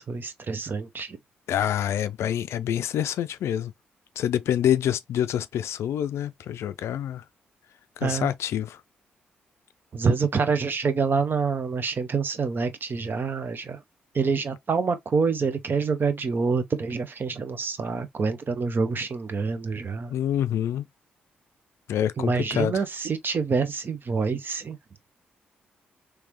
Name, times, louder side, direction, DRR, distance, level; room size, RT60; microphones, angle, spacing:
voice 1, 0.1-1.2 8.0-8.3 9.9-13.8 14.1-20.1 22.2-24.8, right 5 dB, 45° right, 0.8 m, -26 dB
voice 2, 1.5-3.7 4.2-7.2 8.0-8.8 20.1-20.8 21.9-22.7, left 10 dB, 65° left, 0.4 m, -26 dB
3.3 x 3.2 x 3.0 m
hypercardioid pair, 40°, 5 cm